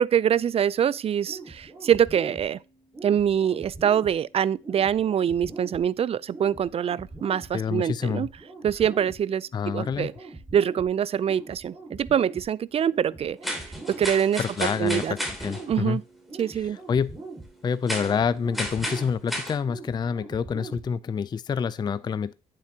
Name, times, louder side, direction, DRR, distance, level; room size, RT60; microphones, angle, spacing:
voice 1, 0.0-2.6 3.0-8.3 8.6-9.5 9.7-10.1 10.5-13.4 13.6-14.4 14.8-15.1 15.7-16.0 16.4-16.8, right 9 dB, 40° right, 0.4 m, -24 dB
sound 1, 1.2-21.2, right 3 dB, 25° right, 4.3 m, -43 dB
voice 2, 7.5-8.3 9.5-10.1 14.4-16.0 16.9-17.1 17.6-22.3, left 6 dB, 30° left, 0.4 m, -27 dB
sound 2, 13.4-15.7 17.9-18.2 18.5-19.6, equal, ahead, 2.9 m, -33 dB
8.7 x 7.5 x 2.8 m
supercardioid pair, 70°, 15 cm